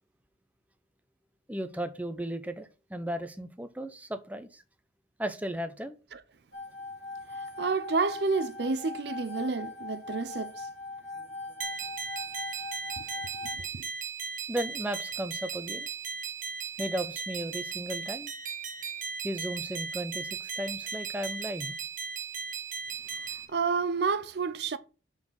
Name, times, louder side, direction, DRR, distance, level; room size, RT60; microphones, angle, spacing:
voice 1, 1.5-4.6 5.2-6.0 14.5-15.9 16.8-18.3 19.2-21.7, right 1 dB, 10° right, 0.7 m, -35 dB
sound 1, 6.5-13.6, left 3 dB, 80° left, 2.2 m, -40 dB
voice 2, 7.3-10.7 13.0-13.1 13.7-13.8 23.5-24.8, right 4 dB, 60° right, 0.5 m, -30 dB
sound 2, 11.6-23.4, right 6 dB, 45° right, 1.3 m, -37 dB
6.1 x 5.7 x 6.3 m
head